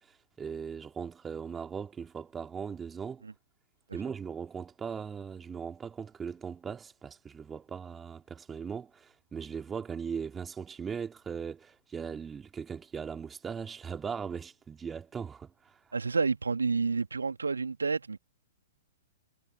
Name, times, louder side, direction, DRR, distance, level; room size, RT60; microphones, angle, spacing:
voice 1, 0.0-3.2 3.9-15.8, right 6 dB, 15° right, 3.1 m, -39 dB
voice 2, 15.9-18.2, right 4 dB, 75° right, 2.3 m, -29 dB
figure-of-eight pair, 110°, 0 cm